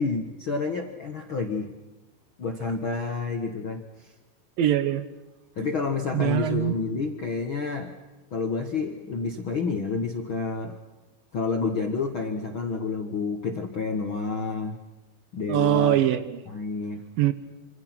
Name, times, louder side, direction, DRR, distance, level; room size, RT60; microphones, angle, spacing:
voice 1, 0.0-1.7 2.4-4.1 5.6-7.9 8.3-10.8 11.3-14.8 15.3-15.9 16.5-17.0, left 4 dB, 55° left, 4 dB, 1.4 m, -29 dB
voice 2, 4.6-5.0 6.1-6.8 15.5-16.4 17.2-17.3, right 12 dB, 70° right, 12 dB, 2.6 m, -22 dB
27.5 x 27.0 x 6.1 m, 1.1 s
omnidirectional pair, 4.5 m